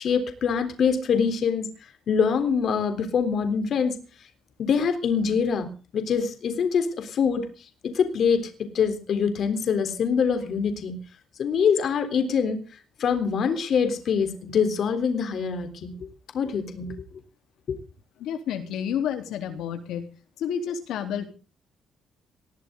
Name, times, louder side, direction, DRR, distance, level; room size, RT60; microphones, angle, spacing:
voice 1, 0.0-1.7 2.1-4.0 4.6-7.5 7.8-11.0 11.4-12.6 13.0-15.9 16.3-17.0 17.7-17.8, left 6 dB, 50° left, 8 dB, 3.6 m, -24 dB
voice 2, 18.2-20.1 20.4-21.3, left 8 dB, 80° left, 6 dB, 3.6 m, -30 dB
20.0 x 17.0 x 3.9 m, 0.37 s
cardioid pair, 155°, 0 cm